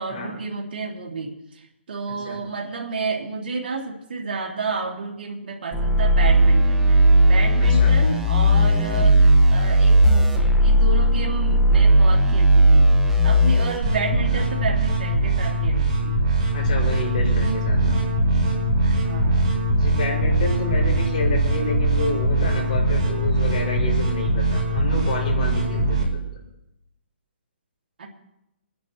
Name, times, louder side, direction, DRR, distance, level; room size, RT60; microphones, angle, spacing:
voice 1, 0.0-12.9 13.2-16.2 18.8-19.5 28.0-28.1, right 4 dB, 60° right, -1 dB, 2.8 m, -31 dB
sound 1, 5.7-13.8, right 1 dB, 5° right, 0.8 m, -16 dB
voice 2, 7.6-7.9 14.3-14.4 16.5-18.0 19.6-26.0, left 2 dB, 45° left, -3 dB, 5.9 m, -29 dB
sound 2, 13.8-26.0, right 1 dB, 35° right, 6.6 m, -21 dB
30.0 x 10.0 x 3.2 m, 0.86 s
hypercardioid pair, 160°, 6 cm